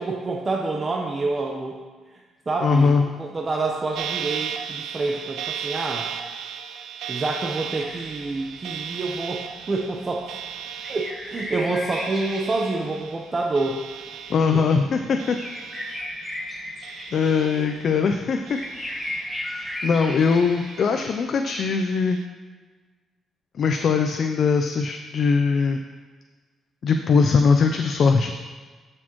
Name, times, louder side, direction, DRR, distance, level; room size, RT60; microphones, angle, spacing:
voice 1, 0.0-1.8 2.1-6.1 7.1-10.3 10.9-13.8 14.5-14.6 17.6-17.7, right 3 dB, 30° right, 0 dB, 0.9 m, -27 dB
voice 2, 2.6-3.0 14.3-15.4 17.1-18.6 19.5-22.2 23.6-25.8 26.8-28.3, left 5 dB, 55° left, 5 dB, 0.5 m, -21 dB
sound 1, 4.0-16.5 16.8-18.0 18.5-19.7 20.1-21.2 21.7-22.3, right 8 dB, 85° right, 0.5 m, -36 dB
sound 2, 7.8-21.2, left 1 dB, 15° left, 1.6 m, -37 dB
13.5 x 6.2 x 3.1 m, 1.4 s
cardioid pair, 90°, 0 cm